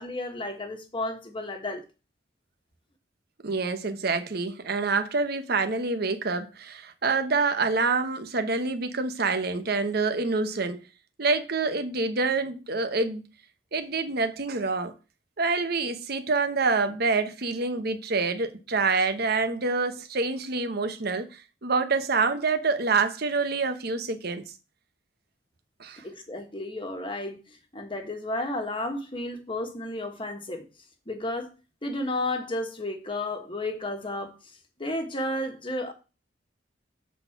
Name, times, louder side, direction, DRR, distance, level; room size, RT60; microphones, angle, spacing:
voice 1, 0.0-1.8 26.0-30.6 31.1-31.5 31.8-34.3 34.8-35.9, left 1 dB, 30° left, 1.4 m, -32 dB
voice 2, 3.4-10.8 11.2-13.2 13.7-14.9 15.4-24.4 25.8-26.0, right 4 dB, 60° right, 1.0 m, -27 dB
7.5 x 4.2 x 5.8 m
head